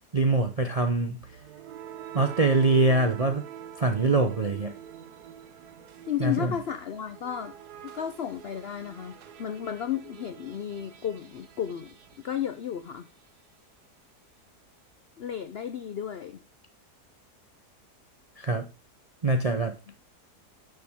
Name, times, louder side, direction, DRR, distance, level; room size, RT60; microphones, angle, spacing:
voice 1, 0.1-1.2 2.1-3.4 3.8-4.7 6.2-6.5 18.4-18.7 19.2-19.8, right 3 dB, 45° right, 0.4 m, -24 dB
sound 1, 1.2-13.1, right 10 dB, 75° right, 1.4 m, -46 dB
voice 2, 6.1-7.5 7.8-11.9 12.2-13.1 15.2-16.4 19.9-20.0, left 9 dB, 70° left, 0.6 m, -33 dB
10.5 x 6.7 x 3.6 m
omnidirectional pair, 1.7 m